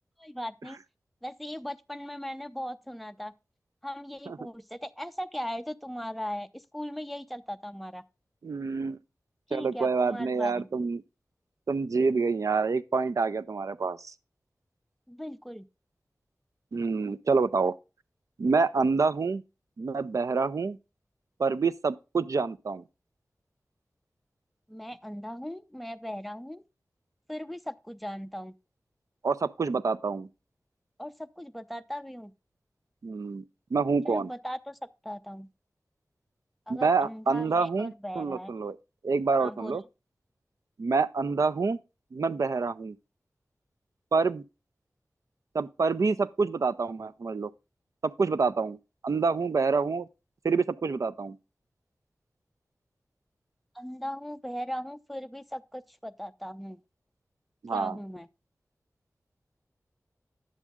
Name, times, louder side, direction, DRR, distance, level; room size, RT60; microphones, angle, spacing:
voice 1, 0.2-0.8 1.2-3.3 3.8-8.0 9.5-10.7 15.1-15.7 24.7-26.6 27.3-28.5 31.0-32.3 34.1-34.8 35.0-35.5 36.7-38.5 39.4-39.8 53.7-56.8 57.7-58.3, equal, ahead, 0.5 m, -38 dB
voice 2, 8.4-9.0 9.5-11.0 11.7-14.1 16.7-17.7 18.4-19.4 19.8-20.8 21.4-22.8 29.2-30.3 33.0-33.4 33.7-34.3 36.7-38.8 39.0-39.8 40.8-41.8 42.1-43.0 44.1-44.4 45.5-47.5 48.0-48.8 49.0-50.1 50.4-51.4 57.6-57.9, right 4 dB, 65° right, 0.5 m, -27 dB
10.0 x 7.3 x 3.5 m
wide cardioid pair, 85°, 6 cm